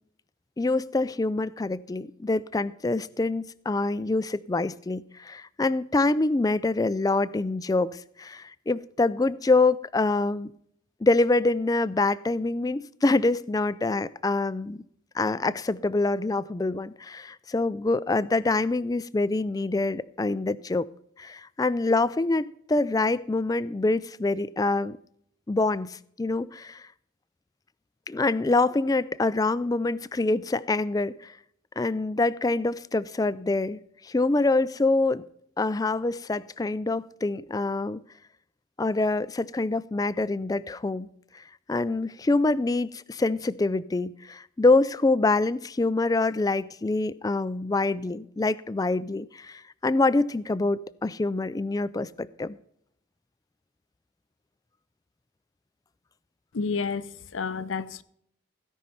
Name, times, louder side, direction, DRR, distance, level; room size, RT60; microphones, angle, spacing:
voice 1, 0.6-10.5 11.0-14.8 15.1-20.9 21.2-25.0 25.5-26.8 28.1-31.3 31.8-35.2 35.6-38.0 38.8-41.1 41.3-41.4 41.7-52.6, left 2 dB, 20° left, 0.3 m, -25 dB
voice 2, 56.5-58.0, left 5 dB, 85° left, 0.6 m, -30 dB
16.5 x 5.5 x 5.7 m
head